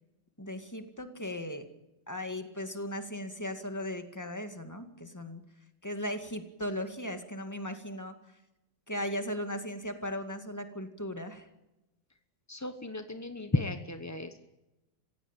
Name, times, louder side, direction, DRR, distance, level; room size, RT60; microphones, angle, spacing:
voice 1, 0.4-1.7 2.1-5.4 5.8-8.2 8.9-11.5, left 1 dB, 10° left, 7 dB, 1.9 m, -37 dB
voice 2, 12.5-14.4, left 2 dB, 25° left, 8 dB, 0.3 m, -34 dB
27.0 x 16.0 x 9.0 m, 0.98 s
omnidirectional pair, 2.4 m